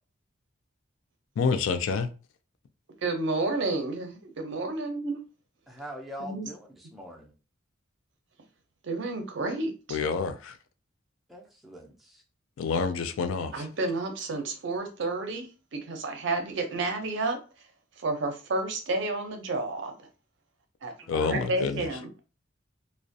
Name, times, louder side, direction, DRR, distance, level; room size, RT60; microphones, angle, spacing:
voice 1, 1.4-2.1 9.9-10.6 12.6-13.7 21.1-21.9, left 5 dB, 70° left, 10 dB, 0.3 m, -28 dB
voice 2, 3.0-5.2 6.2-6.5 8.8-10.0 13.5-17.4 18.0-19.9 20.8-20.9 21.3-22.1, right 2 dB, 60° right, 5 dB, 0.5 m, -30 dB
voice 3, 5.7-7.3 11.3-12.2 21.0-21.5, equal, ahead, -2 dB, 0.4 m, -43 dB
2.4 x 2.0 x 2.6 m, 0.34 s
head